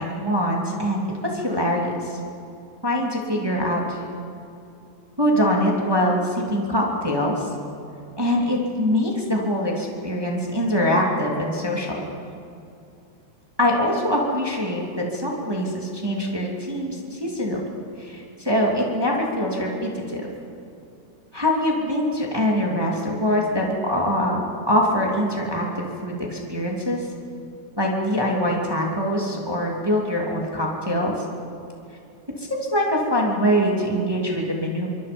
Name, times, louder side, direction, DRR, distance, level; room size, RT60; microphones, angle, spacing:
voice 1, 0.0-2.2 2.8-4.0 5.2-7.5 8.2-12.0 13.6-17.7 18.0-20.3 21.3-27.0 27.8-31.1 32.4-34.9, equal, 10° right, -2 dB, 2.6 m, -23 dB
27.0 x 23.5 x 5.4 m, 2.6 s
omnidirectional pair, 3.5 m